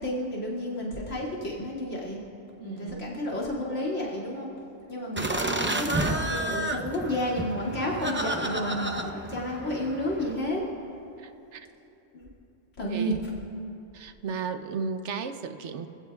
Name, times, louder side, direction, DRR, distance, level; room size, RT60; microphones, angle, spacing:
voice 1, 0.0-2.2 2.6-4.5 4.9-10.6 12.1-12.3 12.8-13.2, left 1 dB, 75° left, -4 dB, 2.8 m, -31 dB
voice 2, 2.6-3.2 11.2-11.7 12.9-13.3 13.9-15.9, right 5 dB, 70° right, 8 dB, 1.0 m, -35 dB
sound 1, 5.2-10.3, right 1 dB, 15° right, 0.5 m, -31 dB
25.5 x 17.0 x 2.4 m, 2.9 s
omnidirectional pair, 1.3 m